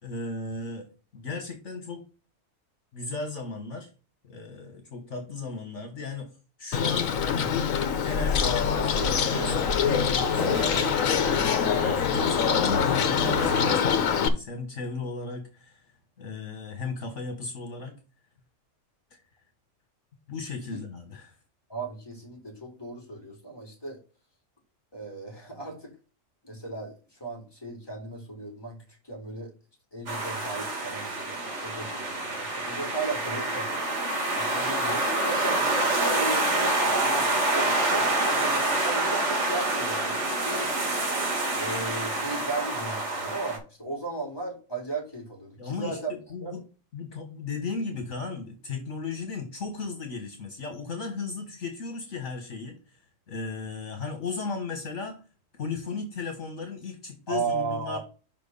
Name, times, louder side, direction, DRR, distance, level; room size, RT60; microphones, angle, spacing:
voice 1, 0.0-0.9 1.1-2.0 2.9-3.9 4.2-6.3 6.6-7.7 8.0-15.9 16.2-17.9 20.3-21.3 45.6-46.6 46.9-53.0 53.3-55.2 55.5-58.0, left 4 dB, 60° left, 5 dB, 1.6 m, -35 dB
Bird, 6.7-14.3, left 7 dB, 80° left, 1.2 m, -25 dB
sound 1, 8.4-14.0, right 3 dB, 90° right, 2.0 m, -35 dB
voice 2, 21.7-24.0 24.9-25.9 26.4-29.5 29.9-33.7 34.3-40.7 41.5-46.1 46.4-46.6 57.3-58.0, right 3 dB, 20° left, 1 dB, 2.7 m, -36 dB
sound 2, 30.1-43.6, right 2 dB, 60° right, 2.3 m, -27 dB
5.7 x 4.6 x 5.4 m, 0.35 s
omnidirectional pair, 1.4 m